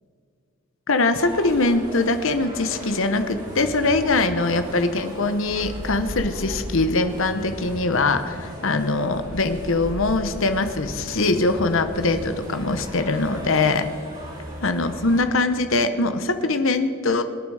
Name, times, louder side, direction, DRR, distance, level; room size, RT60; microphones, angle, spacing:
voice 1, 0.9-13.9 14.6-17.2, left 3 dB, 60° left, 9 dB, 1.0 m, -22 dB
sound 1, 1.2-15.2, equal, 40° right, 4.6 m, -38 dB
sound 2, 3.4-13.2, equal, 15° left, 3.3 m, -40 dB
24.5 x 9.0 x 4.9 m, 2.3 s
head